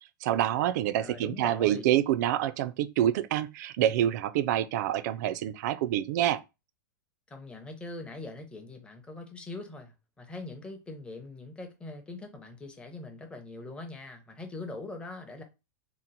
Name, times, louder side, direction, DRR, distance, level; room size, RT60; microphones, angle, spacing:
voice 1, 0.2-6.4, right 12 dB, 55° right, 0.4 m, -27 dB
voice 2, 1.0-1.9 7.3-15.4, left 2 dB, 10° left, 0.7 m, -42 dB
2.9 x 2.0 x 3.9 m
hypercardioid pair, 130°, 11 cm